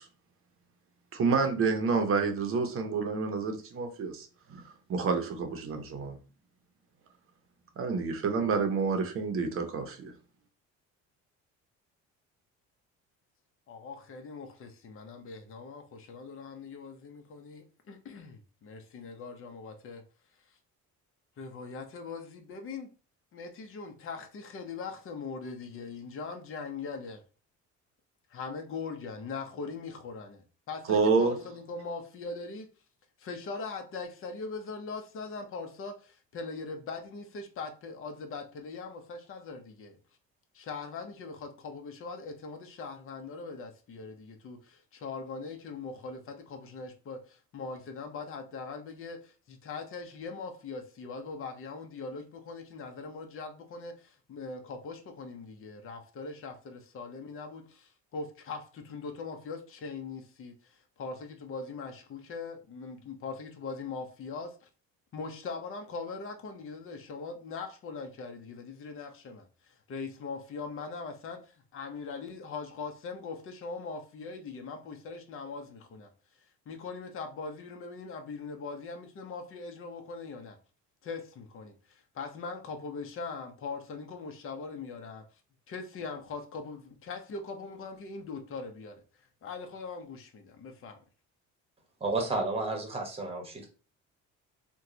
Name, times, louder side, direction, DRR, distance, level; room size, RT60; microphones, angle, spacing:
voice 1, 1.1-6.2 7.8-10.1 30.9-31.4, right 4 dB, 45° right, 0.7 m, -29 dB
voice 2, 13.7-20.0 21.4-22.9 23.3-27.2 28.3-32.7 33.2-40.0 40.5-64.7 65.1-76.1 76.7-80.6 81.0-85.2 85.7-88.9 89.4-91.0, left 4 dB, 45° left, 0.7 m, -41 dB
voice 3, 92.0-93.7, right 2 dB, 20° right, 1.0 m, -31 dB
2.9 x 2.2 x 3.8 m
cardioid pair, 125°, 30 cm